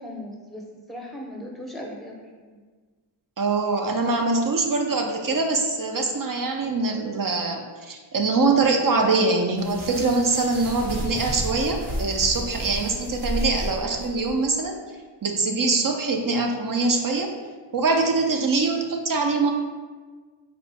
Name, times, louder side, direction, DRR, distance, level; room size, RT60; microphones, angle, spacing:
voice 1, 0.0-2.6, left 1 dB, ahead, -1 dB, 0.8 m, -38 dB
voice 2, 3.4-14.8 15.2-17.3 17.7-19.5, right 3 dB, 45° right, 3 dB, 0.6 m, -23 dB
sound 1, 9.6-14.3, equal, 75° right, 1.4 m, -32 dB
4.3 x 2.3 x 4.0 m, 1.4 s
wide cardioid pair, 70°, 46 cm